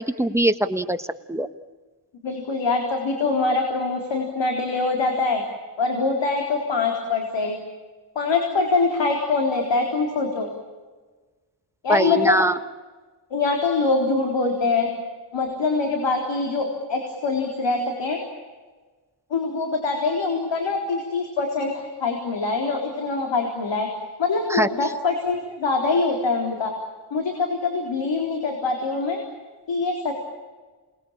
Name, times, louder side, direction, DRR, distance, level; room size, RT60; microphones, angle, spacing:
voice 1, 0.0-1.5 11.9-12.6 24.5-24.7, right 1 dB, 5° right, 8 dB, 1.4 m, -22 dB
voice 2, 2.2-5.4 5.8-7.6 8.2-10.5 11.8-12.3 13.3-14.9 15.3-18.2 19.3-23.9 24.2-26.7 27.1-29.2 29.7-30.1, left 3 dB, 85° left, 2 dB, 4.0 m, -24 dB
28.5 x 20.5 x 8.8 m, 1.3 s
wide cardioid pair, 100°, 43 cm